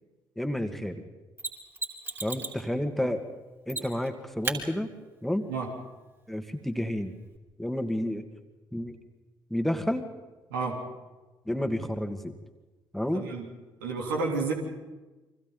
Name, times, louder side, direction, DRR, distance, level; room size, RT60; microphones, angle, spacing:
voice 1, 0.4-1.0 2.2-3.2 3.7-4.9 5.2-5.5 6.3-7.1 7.6-8.2 8.7-9.0 9.5-10.1 11.5-12.3 12.9-13.3, left 1 dB, ahead, 6 dB, 2.2 m, -30 dB
Mechanisms, 1.4-2.6 3.7-4.1 4.4-4.6 7.4-7.5, right 3 dB, 20° right, 5.0 m, -34 dB
voice 2, 10.5-10.8 13.1-13.5 13.8-14.5, right 4 dB, 80° right, 0 dB, 3.5 m, -30 dB
30.0 x 24.5 x 4.1 m, 1.2 s
figure-of-eight pair, 45°, 11 cm